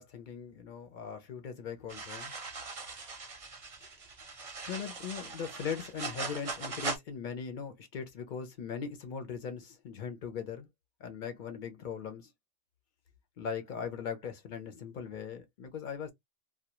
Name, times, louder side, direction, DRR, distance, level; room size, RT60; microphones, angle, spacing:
voice 1, 0.0-2.4 3.8-3.9 4.7-10.7 11.0-12.3 13.4-16.1, left 6 dB, 55° left, 0.6 m, -40 dB
sound 1, 1.9-7.0, right 4 dB, 40° right, 0.6 m, -40 dB
2.2 x 2.1 x 2.9 m
omnidirectional pair, 1.3 m